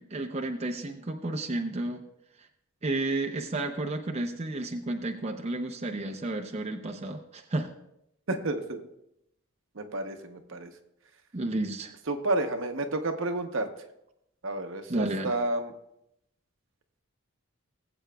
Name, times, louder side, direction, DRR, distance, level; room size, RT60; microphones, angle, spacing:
voice 1, 0.0-2.0 2.4-2.5 2.8-7.7 11.3-11.9 14.9-15.3, right 2 dB, 30° right, 3 dB, 0.6 m, -32 dB
voice 2, 8.3-8.8 9.7-10.7 12.1-13.7 14.4-15.7, right 2 dB, 60° right, 6 dB, 0.8 m, -30 dB
20.0 x 7.9 x 2.3 m, 0.82 s
head